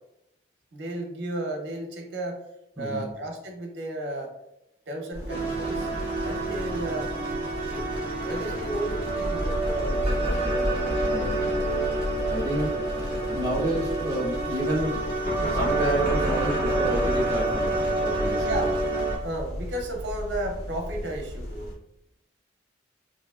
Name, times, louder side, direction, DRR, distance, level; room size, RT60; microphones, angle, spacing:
voice 1, 0.7-2.4 2.8-4.3 4.9-5.9 6.2-7.1 7.5-7.9 8.2-10.4 12.5-12.9 18.4-18.7 19.2-21.7, right 1 dB, 65° right, 2 dB, 0.6 m, -34 dB
voice 2, 2.8-3.1 11.1-11.6 12.3-12.8 13.1-18.7, right 1 dB, 15° right, -5 dB, 0.6 m, -30 dB
sound 1, 5.1-21.7, equal, 90° left, 1.0 m, -34 dB
sound 2, 5.3-19.2, right 2 dB, 45° left, 1.4 m, -28 dB
3.0 x 2.6 x 2.3 m, 0.83 s
head